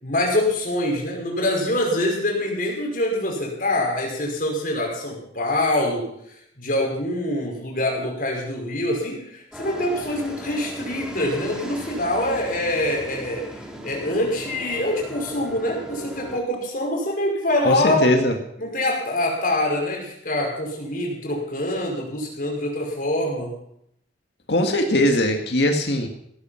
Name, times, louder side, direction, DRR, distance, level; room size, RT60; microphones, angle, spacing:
voice 1, 0.0-6.2 6.6-18.1 18.6-23.6, left 1 dB, 50° left, 0 dB, 5.7 m, -25 dB
sound 1, 9.5-16.4, right 1 dB, 5° right, 2.5 m, -37 dB
voice 2, 17.6-18.4 24.5-26.1, left 1 dB, 65° left, 4 dB, 2.0 m, -20 dB
17.5 x 12.5 x 5.9 m, 0.73 s
head